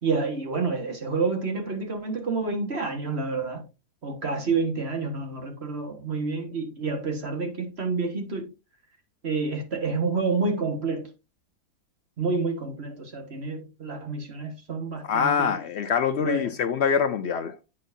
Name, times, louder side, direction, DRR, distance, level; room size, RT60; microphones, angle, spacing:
voice 1, 0.0-3.6 4.0-8.5 9.2-11.1 12.2-15.5 16.2-16.5, right 4 dB, 40° right, 1.7 m, -29 dB
voice 2, 15.0-17.6, left 7 dB, 70° left, 0.6 m, -24 dB
8.3 x 6.6 x 2.6 m
omnidirectional pair, 1.7 m